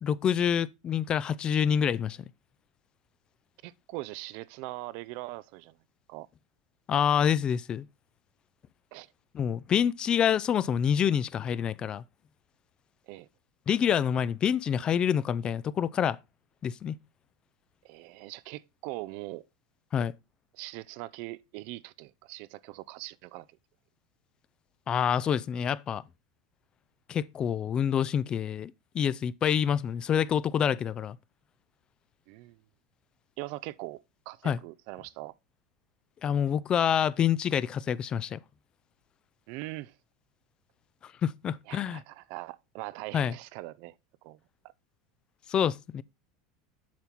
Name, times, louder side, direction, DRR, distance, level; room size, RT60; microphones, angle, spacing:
voice 1, 0.0-2.2 6.9-7.9 9.3-12.0 13.7-16.2 16.6-17.0 19.9-20.1 24.9-26.0 27.1-31.2 34.4-34.6 36.2-38.4 41.2-42.0 43.1-43.4 45.5-46.0, left 8 dB, 35° left, 0.5 m, -27 dB
voice 2, 3.6-5.7 6.1-6.3 8.9-9.1 13.1-13.3 17.8-19.4 20.5-23.5 32.3-32.6 33.4-35.3 39.5-39.9 41.7-43.9 44.2-44.4, right 19 dB, 60° right, 0.5 m, -41 dB
7.3 x 5.6 x 4.5 m
hypercardioid pair, 95°, 3 cm